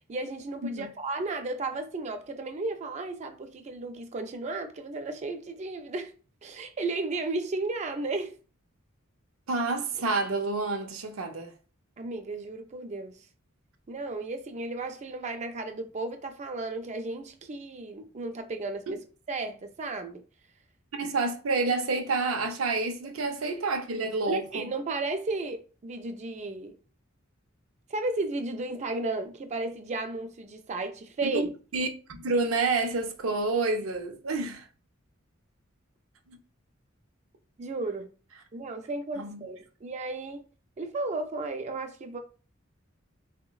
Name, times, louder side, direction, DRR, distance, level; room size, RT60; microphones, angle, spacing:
voice 1, 0.1-6.2 6.4-8.4 12.0-13.2 13.9-19.0 19.3-20.2 24.3-26.8 27.9-31.5 37.6-38.1 38.5-40.4 40.8-42.2, right 3 dB, 35° right, 0.4 m, -34 dB
voice 2, 9.5-11.5 18.9-19.0 20.9-24.7 31.2-31.9 32.2-34.6 36.3-36.4 39.2-39.4, right 3 dB, 85° right, 0.5 m, -29 dB
3.8 x 2.1 x 2.3 m
head